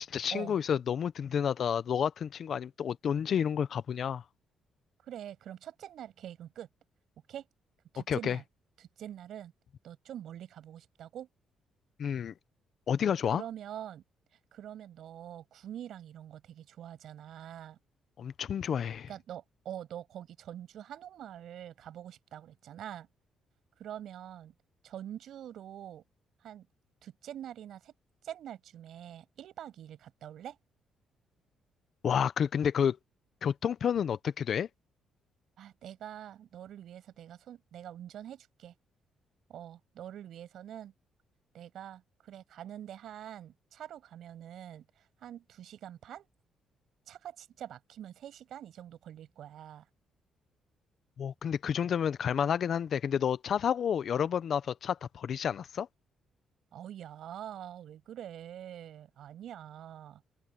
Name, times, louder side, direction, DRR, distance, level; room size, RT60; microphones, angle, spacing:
voice 1, 0.0-4.2 8.1-8.4 12.0-12.3 12.9-13.4 18.2-19.1 32.0-33.0 33.4-34.7 51.2-55.9, left 8 dB, 60° left, 0.8 m, -30 dB
voice 2, 5.1-6.7 7.3-7.5 7.9-8.4 8.8-9.5 9.8-11.3 13.3-14.0 14.5-17.8 19.1-23.1 23.8-24.5 24.8-26.0 26.4-26.7 27.0-27.9 28.2-30.6 35.6-38.7 39.5-40.9 41.5-46.3 47.1-49.9 56.7-60.2, right 10 dB, 70° right, 6.6 m, -45 dB
open air
cardioid pair, 90°, 0 cm